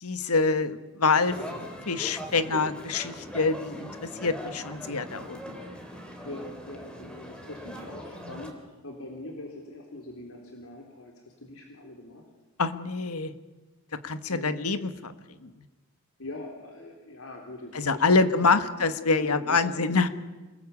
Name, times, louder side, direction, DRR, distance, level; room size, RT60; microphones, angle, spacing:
voice 1, 0.0-1.4 1.9-5.4 12.6-13.3 14.0-15.1 15.4-15.6 17.7-20.1, left 4 dB, 90° left, 10 dB, 1.5 m, -26 dB
sound 1, 1.2-8.5, equal, 5° left, 3.2 m, -41 dB
voice 2, 6.2-12.2 14.3-14.6 16.2-18.7 19.1-20.0, left 1 dB, 75° left, 1 dB, 3.6 m, -42 dB
28.0 x 20.0 x 8.5 m, 1.2 s
head